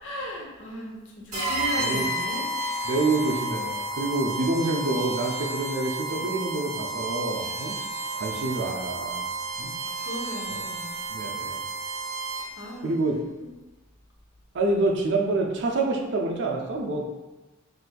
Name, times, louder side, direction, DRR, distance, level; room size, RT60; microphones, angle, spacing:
voice 1, 0.0-1.0 1.3-2.4 10.1-11.0 12.6-12.9, left 1 dB, 65° left, -1 dB, 0.7 m, -36 dB
sound 1, 1.3-12.7, right 2 dB, 40° right, 1.2 m, -31 dB
voice 2, 1.8-2.1 2.8-7.8 8.1-9.2 9.6-9.7 10.5-10.6 11.1-11.6 12.8-13.2 14.5-17.1, right 2 dB, 60° right, 1 dB, 0.4 m, -27 dB
4.0 x 2.5 x 2.2 m, 1.1 s
head